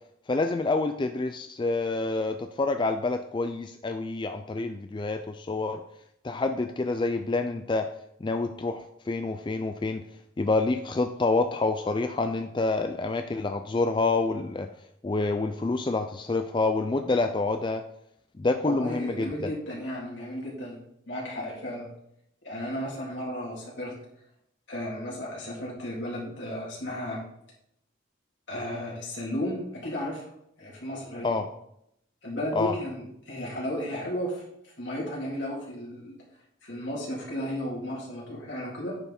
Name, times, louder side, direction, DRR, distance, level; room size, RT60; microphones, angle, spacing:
voice 1, 0.3-5.8 6.2-7.9 8.2-10.0 10.4-14.7 15.0-17.8 18.4-19.5 31.2-31.4 32.6-32.7, left 3 dB, 25° left, 7 dB, 0.3 m, -27 dB
voice 2, 18.6-20.8 21.1-21.9 22.4-24.0 24.7-27.2 28.5-30.3 30.6-31.4 32.2-36.2 36.6-39.0, equal, 70° left, -5 dB, 3.4 m, -34 dB
9.5 x 5.6 x 4.3 m, 0.77 s
head